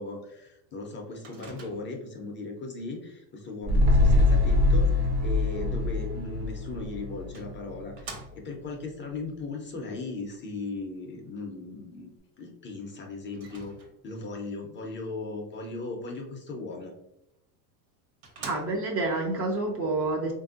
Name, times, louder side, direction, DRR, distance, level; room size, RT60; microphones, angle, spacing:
voice 1, 0.0-12.1 12.4-13.7 14.0-16.9, left 3 dB, 25° left, 1 dB, 0.5 m, -37 dB
Microwave oven, 1.2-2.1 6.5-6.6 7.3-8.7 13.3-14.2 17.3-17.4 17.9-18.0 18.2-19.1, right 3 dB, 50° right, 1.0 m, -45 dB
sound 1, 3.6-8.2 8.5-8.6, left 2 dB, 70° right, 1.2 m, -24 dB
voice 2, 18.4-20.3, right 2 dB, 30° right, 1 dB, 0.5 m, -28 dB
3.4 x 2.6 x 2.4 m, 0.83 s
supercardioid pair, 110°, 48 cm